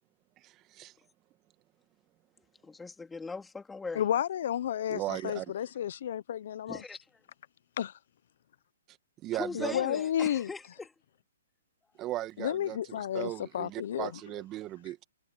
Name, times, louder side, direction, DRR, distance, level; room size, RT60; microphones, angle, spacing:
voice 1, 0.4-0.9 4.9-5.5 8.9-9.0 9.2-9.8 12.0-15.0, right 15 dB, 25° right, 2.0 m, -37 dB
voice 2, 2.6-4.0 6.7-7.0 9.3-10.9, left 4 dB, 10° left, 3.2 m, -39 dB
voice 3, 3.9-6.8 7.8-8.0 9.5-10.5 12.4-14.1, left 10 dB, 60° left, 0.8 m, -32 dB
hypercardioid pair, 135°, 0 cm